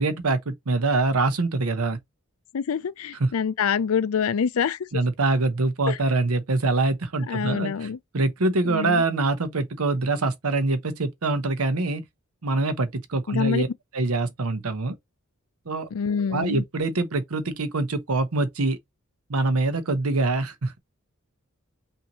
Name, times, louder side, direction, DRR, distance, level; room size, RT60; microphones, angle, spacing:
voice 1, 0.0-2.0 3.2-3.3 4.9-12.0 12.4-13.7 13.9-14.9 15.7-15.9 16.3-18.8 19.3-20.8, right 3 dB, 80° right, 0.9 m, -24 dB
voice 2, 2.5-4.8 5.9-6.0 7.3-8.0 8.7-9.0 13.3-13.6 15.9-16.6, left 6 dB, 70° left, 0.4 m, -26 dB
5.6 x 2.6 x 3.0 m
head